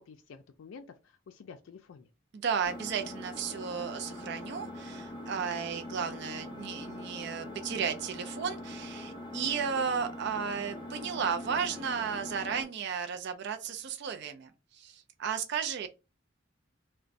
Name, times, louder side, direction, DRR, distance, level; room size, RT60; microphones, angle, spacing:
voice 1, 0.0-2.1, left 5 dB, 85° left, 0.4 m, -50 dB
voice 2, 2.3-15.9, right 7 dB, 60° right, 0.4 m, -34 dB
Engine, 2.6-12.6, left 1 dB, 25° left, 0.6 m, -42 dB
2.5 x 2.2 x 3.9 m
head